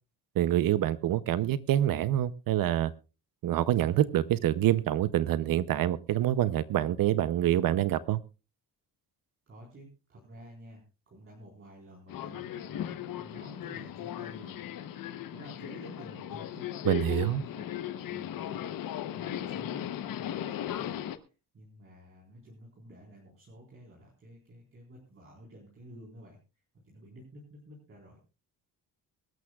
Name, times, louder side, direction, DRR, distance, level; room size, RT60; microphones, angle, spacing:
voice 1, 0.4-2.9 3.4-8.2 16.8-17.4, right 12 dB, 60° right, 15 dB, 0.7 m, -26 dB
voice 2, 9.5-21.0 21.5-26.4 26.7-28.2, right 1 dB, 35° right, -3 dB, 4.2 m, -52 dB
Subway metro underground, 12.1-21.2, left 11 dB, 60° left, 1.0 m, -37 dB
23.0 x 12.5 x 2.4 m, 0.32 s
cardioid pair, 170°, 39 cm